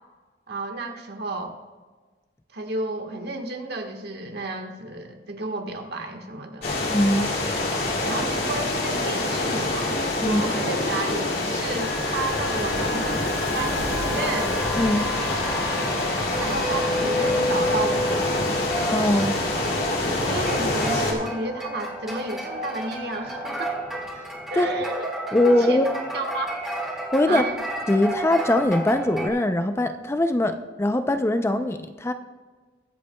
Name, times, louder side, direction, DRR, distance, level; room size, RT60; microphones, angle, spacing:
voice 1, 0.5-1.6 2.5-6.8 8.0-13.2 13.5-14.6 16.4-18.4 20.2-23.8 24.5-25.0 25.4-25.9 26.1-26.6 27.3-27.6, right 2 dB, 65° right, 3 dB, 1.4 m, -32 dB
sound 1, 6.6-21.1, left 2 dB, 60° left, 2.5 m, -26 dB
voice 2, 6.9-7.3 10.2-10.4 14.8-15.1 18.9-19.4 24.6-24.7 25.3-25.9 27.1-27.4 27.9-32.1, left 1 dB, 15° left, 8 dB, 0.4 m, -21 dB
sound 2, 11.8-29.3, equal, ahead, 2.0 m, -31 dB
22.0 x 8.2 x 2.2 m, 1.4 s
head